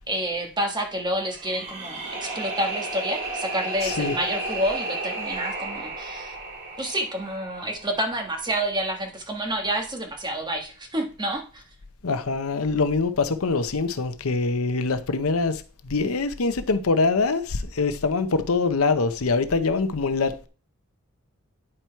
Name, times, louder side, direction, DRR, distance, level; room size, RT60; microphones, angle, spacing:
voice 1, 0.1-6.3 6.8-11.6, right 1 dB, 20° right, 1.4 m, -29 dB
sound 1, 1.2-8.3, right 2 dB, 60° right, 2.9 m, -33 dB
voice 2, 3.8-4.2 12.0-20.5, left 4 dB, 85° left, 0.7 m, -24 dB
9.8 x 4.5 x 4.5 m
head